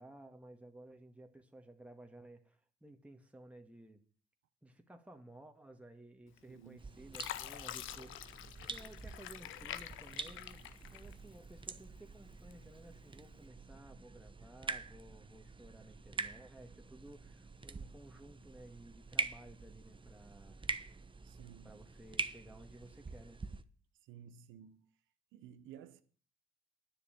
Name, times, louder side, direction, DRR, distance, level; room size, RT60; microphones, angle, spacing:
voice 1, 0.0-4.0 4.6-8.4 8.7-10.6 10.9-20.7 21.6-23.4, right 1 dB, 5° right, 1.8 m, -56 dB
Fill (with liquid), 6.4-6.7 7.1-11.5 12.0-12.8 13.3-13.5, left 12 dB, 70° left, 0.9 m, -46 dB
voice 2, 6.5-6.8 21.2-21.8 24.0-24.9 25.3-26.0, right 9 dB, 75° right, 0.9 m, -54 dB
sound 1, 6.8-23.6, right 4 dB, 25° right, 1.0 m, -45 dB
9.7 x 6.9 x 9.0 m
hypercardioid pair, 55°, 21 cm